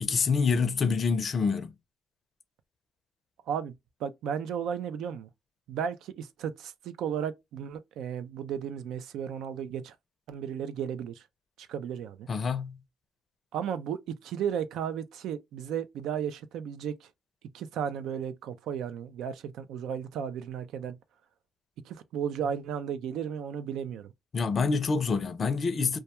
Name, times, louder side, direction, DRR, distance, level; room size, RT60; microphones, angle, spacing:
voice 1, 0.0-1.7 12.3-12.8 24.3-26.0, left 5 dB, 45° left, 0.4 m, -27 dB
voice 2, 4.0-5.3 5.7-9.9 10.3-11.2 11.7-12.3 13.5-17.1 17.5-21.0 21.8-24.1, right 8 dB, 85° right, 0.4 m, -34 dB
2.2 x 2.2 x 2.8 m
cardioid pair, 90°, 0 cm